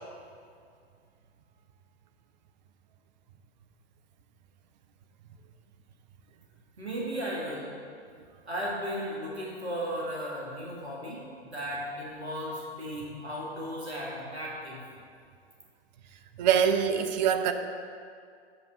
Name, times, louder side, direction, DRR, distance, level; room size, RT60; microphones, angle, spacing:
voice 1, 6.8-7.7 8.5-14.8, equal, 85° right, -4 dB, 1.7 m, -35 dB
voice 2, 16.4-17.5, right 8 dB, 45° right, 8 dB, 0.6 m, -24 dB
8.0 x 6.9 x 4.0 m, 2.2 s
figure-of-eight pair, 105°, 32 cm